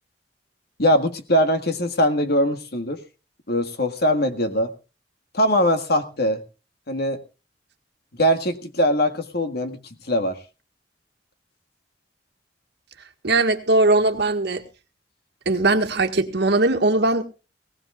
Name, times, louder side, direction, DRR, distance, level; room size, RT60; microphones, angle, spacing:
voice 1, 0.8-3.0 3.5-4.7 5.3-6.4 6.9-7.2 8.2-9.8 10.1-10.4, equal, 60° left, 7 dB, 1.8 m, -21 dB
voice 2, 13.2-14.6 15.5-17.2, right 2 dB, 65° right, 6 dB, 1.7 m, -20 dB
19.0 x 18.5 x 2.4 m, 0.32 s
head